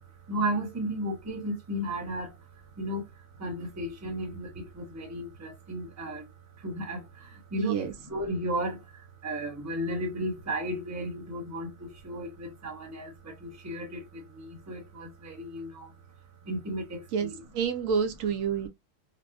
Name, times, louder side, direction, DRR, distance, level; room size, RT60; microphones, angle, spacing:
voice 1, 0.3-6.3 6.6-15.9 16.4-17.3, equal, 15° right, 0.7 m, -34 dB
voice 2, 7.6-7.9 17.1-18.7, right 7 dB, 75° right, 1.0 m, -28 dB
3.3 x 2.6 x 2.5 m
omnidirectional pair, 1.4 m